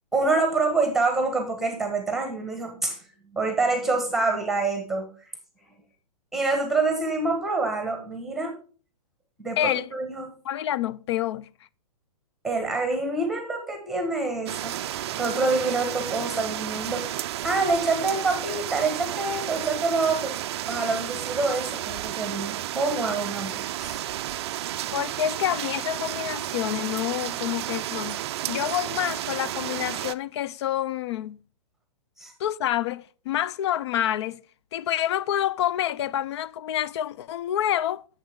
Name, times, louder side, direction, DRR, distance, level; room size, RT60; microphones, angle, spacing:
voice 1, 0.1-3.0 3.3-5.1 6.3-8.5 9.4-10.3 12.4-14.8 15.2-20.4 20.7-24.0 32.2-32.3, right 3 dB, ahead, 1.3 m, -26 dB
voice 2, 10.5-11.5 24.9-28.2 28.5-31.4 32.4-34.4 34.7-38.0, left 12 dB, 40° left, 0.4 m, -27 dB
sound 1, 14.5-30.1, right 13 dB, 40° right, 0.4 m, -32 dB
8.9 x 7.2 x 3.6 m
hypercardioid pair, 140°, 21 cm